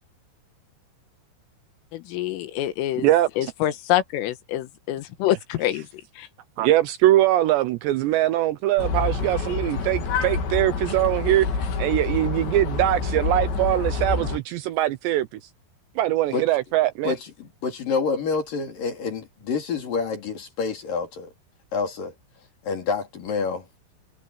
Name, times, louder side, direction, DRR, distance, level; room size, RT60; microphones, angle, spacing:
voice 1, 1.9-5.9 6.2-6.3, left 13 dB, 85° left, 4.0 m, -26 dB
voice 2, 6.6-11.5 11.8-15.3 16.0-17.1, right 14 dB, 80° right, 2.6 m, -22 dB
sound 1, 8.8-14.4, left 4 dB, 65° left, 5.6 m, -27 dB
voice 3, 17.0-21.3 21.7-22.1 22.6-23.7, left 5 dB, 45° left, 4.7 m, -28 dB
omnidirectional pair, 5.7 m